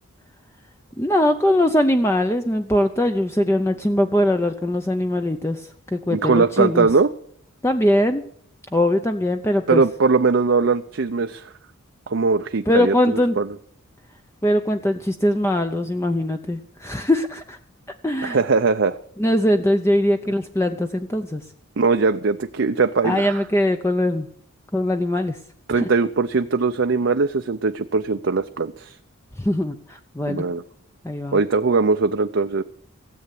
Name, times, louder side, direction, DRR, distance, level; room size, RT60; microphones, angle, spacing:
voice 1, 1.0-6.9 7.6-8.2 8.7-9.8 12.7-13.4 14.4-17.6 18.0-18.4 19.2-21.4 23.0-24.3 24.7-25.4 25.8-25.9 29.4-30.4 31.0-31.4, left 1 dB, 10° left, 7 dB, 0.6 m, -21 dB
voice 2, 6.1-7.1 9.7-11.5 12.1-13.6 18.2-19.0 21.8-23.4 25.7-29.0 30.3-30.6 31.3-32.6, right 4 dB, 55° right, 7 dB, 0.6 m, -20 dB
17.0 x 8.0 x 8.2 m, 0.63 s
head